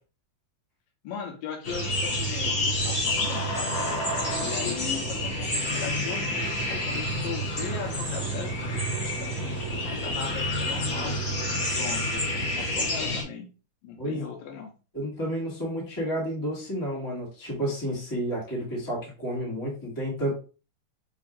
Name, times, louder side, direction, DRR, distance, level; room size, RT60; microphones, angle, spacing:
voice 1, 1.0-3.8 4.4-11.2 11.7-13.5 13.8-14.7, left 7 dB, 85° left, 3 dB, 2.7 m, -38 dB
sound 1, 1.6-13.2, left 1 dB, 55° left, 1.0 m, -28 dB
voice 2, 14.0-14.3 14.9-20.3, equal, 10° left, -5 dB, 1.1 m, -31 dB
6.8 x 2.8 x 2.5 m, 0.34 s
omnidirectional pair, 3.9 m